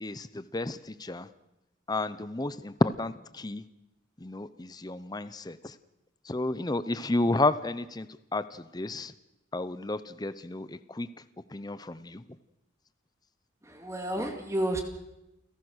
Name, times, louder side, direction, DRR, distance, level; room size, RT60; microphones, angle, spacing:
voice 1, 0.0-1.3 1.9-3.6 4.2-5.8 6.2-9.1 9.5-11.1 11.5-12.2, left 2 dB, 20° left, 13 dB, 0.7 m, -31 dB
voice 2, 13.6-14.8, right 1 dB, 15° right, 4 dB, 2.0 m, -31 dB
29.0 x 17.0 x 6.4 m, 0.91 s
head